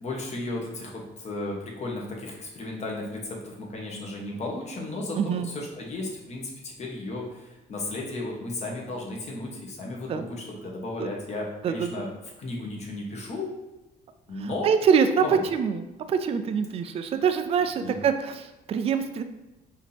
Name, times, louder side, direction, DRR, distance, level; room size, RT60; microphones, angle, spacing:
voice 1, 0.0-12.1 12.4-13.5 14.3-14.7 15.2-15.4 17.6-18.0, left 2 dB, 40° left, -1 dB, 1.2 m, -34 dB
voice 2, 5.2-5.5 10.1-10.2 11.0-11.1 11.6-11.9 14.6-15.2 15.5-19.2, right 7 dB, 35° right, 8 dB, 0.3 m, -25 dB
5.0 x 2.8 x 3.4 m, 1.0 s
cardioid pair, 110°, 17 cm